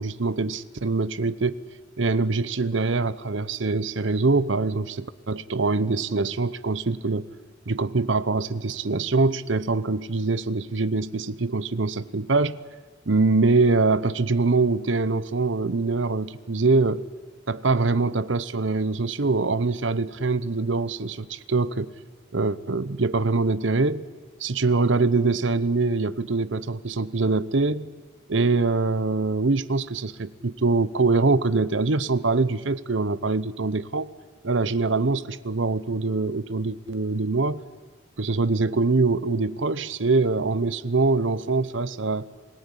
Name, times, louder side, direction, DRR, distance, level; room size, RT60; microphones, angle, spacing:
voice 1, 0.0-1.6 2.0-7.3 7.7-12.6 13.1-17.0 17.5-21.9 22.3-24.1 24.4-27.9 28.3-34.1 34.4-37.6 38.2-42.3, right 3 dB, 70° right, 17 dB, 0.9 m, -24 dB
27.0 x 18.0 x 9.9 m, 1.5 s
head